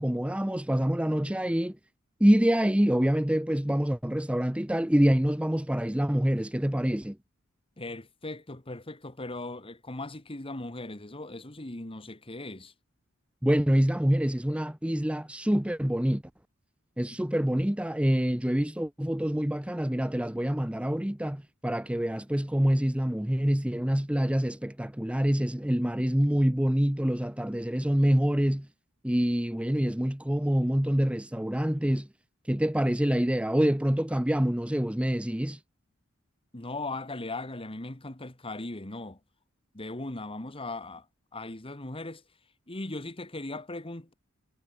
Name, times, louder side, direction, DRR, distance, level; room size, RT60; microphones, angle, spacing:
voice 1, 0.0-1.8 2.2-7.2 13.4-16.2 17.0-28.7 29.0-32.1 32.4-35.6, equal, 5° right, 0.7 m, -26 dB
voice 2, 7.8-12.7 36.5-39.2 39.7-41.0 41.3-42.2 42.7-44.1, left 2 dB, 25° left, 1.9 m, -38 dB
head